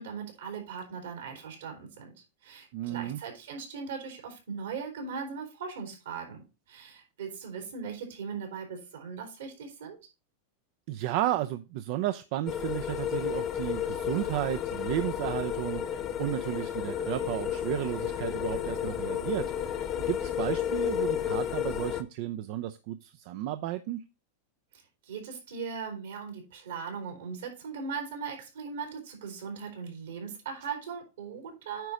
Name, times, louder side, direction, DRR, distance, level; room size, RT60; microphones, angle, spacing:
voice 1, 0.0-2.1 2.4-6.4 6.7-10.0 25.1-31.9, right 6 dB, 80° right, 3 dB, 3.7 m, -39 dB
voice 2, 2.7-3.2 10.9-19.7 20.1-24.0, right 13 dB, 60° right, 10 dB, 0.6 m, -33 dB
sound 1, 12.5-22.0, left 9 dB, 35° left, 0.9 m, -32 dB
9.2 x 4.1 x 5.0 m, 0.28 s
hypercardioid pair, 115°, 0 cm